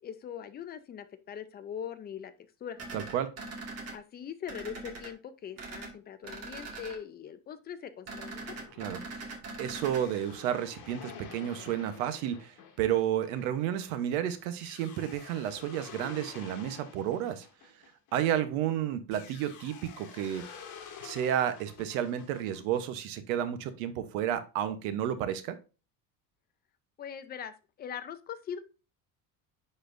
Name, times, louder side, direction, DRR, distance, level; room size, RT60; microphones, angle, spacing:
voice 1, 0.0-2.3 2.6-2.8 3.9-8.6 27.0-28.6, left 8 dB, 25° left, 10 dB, 0.5 m, -41 dB
sound 1, 2.8-3.9 4.5-5.1 5.6-5.9 6.2-7.0 8.1-10.0, right 3 dB, 35° right, 1.8 m, -41 dB
voice 2, 2.9-3.3 8.8-17.5 18.1-20.5 21.0-25.6, right 10 dB, 90° right, 11 dB, 1.0 m, -31 dB
sound 2, 8.4-18.5 19.1-22.8, left 7 dB, 50° left, 1.7 m, -49 dB
10.0 x 4.3 x 2.6 m, 0.33 s
cardioid pair, 150°, 40 cm